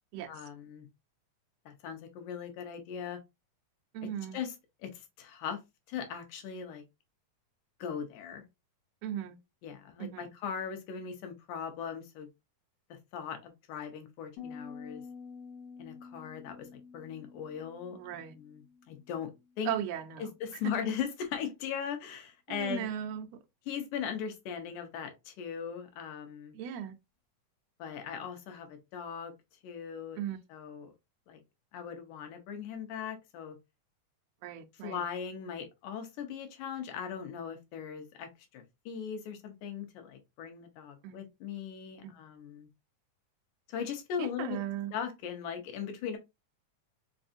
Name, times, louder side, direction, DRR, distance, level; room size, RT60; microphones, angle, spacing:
voice 1, 0.2-0.9 1.7-3.2 4.3-4.6 4.8-5.6 5.9-6.8 7.8-8.5 9.6-12.3 12.9-15.0 15.8-19.3 19.6-19.8 20.2-22.9 23.7-26.6 27.8-29.3 29.6-30.2 30.5-30.9 31.3-31.4 31.7-33.6 34.8-42.7 43.7-44.6 44.9-46.2, left 7 dB, 85° left, 2.4 m, -39 dB
voice 2, 3.9-4.4 9.0-9.4 10.0-10.3 17.9-18.4 19.6-20.3 22.5-23.4 26.5-27.0 30.2-30.4 34.4-35.0 41.0-41.3 42.0-42.1 44.2-44.9, right 10 dB, 80° right, 1.5 m, -37 dB
Piano, 14.4-20.0, left 5 dB, 65° left, 2.1 m, -49 dB
5.2 x 2.6 x 2.5 m
omnidirectional pair, 3.5 m